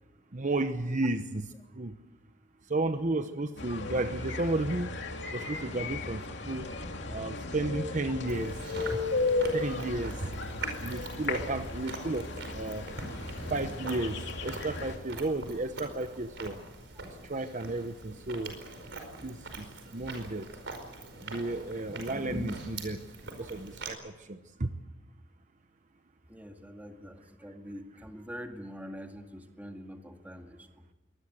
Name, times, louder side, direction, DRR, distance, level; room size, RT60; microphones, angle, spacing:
voice 1, 0.3-1.5 1.7-1.9 2.7-5.0 5.3-6.7 7.1-9.0 9.5-10.3 10.8-12.8 13.5-16.6 17.3-18.5 19.2-20.5 21.2-23.0 23.4-24.7, right 2 dB, 40° right, 9 dB, 1.0 m, -33 dB
sound 1, 3.6-15.0, left 3 dB, 65° left, 2.8 m, -35 dB
Chewing mastication, 8.3-23.9, right 2 dB, 65° right, 4.9 m, -42 dB
voice 2, 26.3-30.8, equal, 10° right, 4 dB, 2.0 m, -45 dB
23.5 x 19.5 x 8.1 m, 1.1 s
head